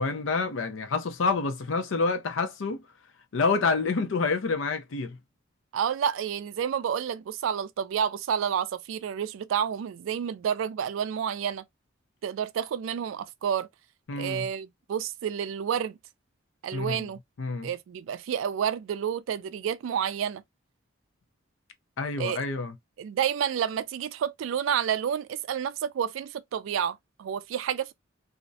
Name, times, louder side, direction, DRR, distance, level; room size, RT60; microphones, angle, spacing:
voice 1, 0.0-2.8 3.3-5.2 14.1-14.5 16.7-17.1 17.4-17.7 22.0-22.7, left 4 dB, 80° left, 0.5 m, -28 dB
voice 2, 5.7-11.6 12.2-13.7 14.2-16.0 16.6-17.2 17.6-20.4 22.2-22.4 23.0-27.9, right 8 dB, 80° right, 0.3 m, -29 dB
2.4 x 2.0 x 2.6 m
head